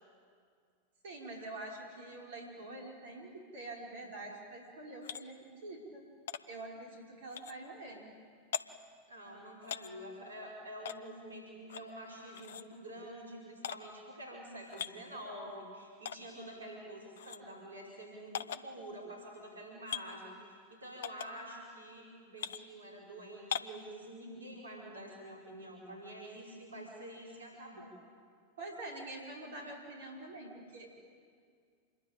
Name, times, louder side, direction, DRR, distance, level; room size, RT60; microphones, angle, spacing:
voice 1, 1.0-6.1 6.5-8.1 28.6-30.9, right 2 dB, 60° right, -1 dB, 5.3 m, -46 dB
sound 1, 5.0-5.2 6.3-6.4 7.3-7.6 8.5-8.6 9.6-9.9 10.8-11.0 11.7-11.9 12.3-12.6 13.6-13.8 14.6-14.9 16.0-16.2 17.2-17.4 18.3-18.6 19.9-20.1 21.0-21.3 22.4-22.6 23.5-23.8, left 9 dB, 60° left, 0.8 m, -39 dB
voice 2, 9.1-27.9, right 1 dB, 75° right, -2 dB, 5.0 m, -47 dB
27.0 x 22.0 x 9.1 m, 2.2 s
figure-of-eight pair, 90°, 0 cm